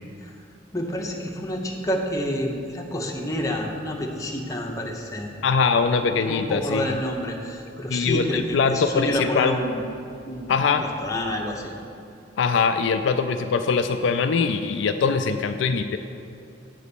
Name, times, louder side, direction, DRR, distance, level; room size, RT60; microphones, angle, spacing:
voice 1, 0.7-5.3 6.1-9.8 10.2-11.7, equal, 15° left, -1 dB, 0.8 m, -29 dB
voice 2, 5.4-6.9 7.9-9.6 10.5-10.9 12.4-16.0, left 5 dB, 70° left, 7 dB, 0.3 m, -22 dB
8.2 x 4.1 x 6.9 m, 2.6 s
head